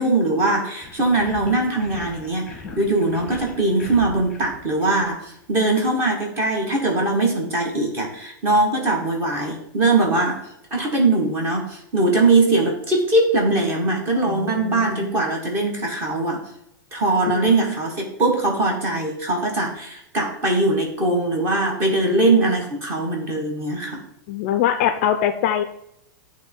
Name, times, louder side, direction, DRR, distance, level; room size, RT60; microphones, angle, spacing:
voice 1, 0.0-10.4 10.7-16.4 16.9-24.0, right 2 dB, 20° right, 1 dB, 1.2 m, -21 dB
sound 1, 0.8-5.4, left 3 dB, 10° left, 1.2 m, -40 dB
voice 2, 14.2-15.1 17.6-17.7 24.3-25.6, left 10 dB, 35° left, 9 dB, 0.4 m, -23 dB
9.1 x 3.1 x 4.4 m, 0.77 s
supercardioid pair, 175°, 10 cm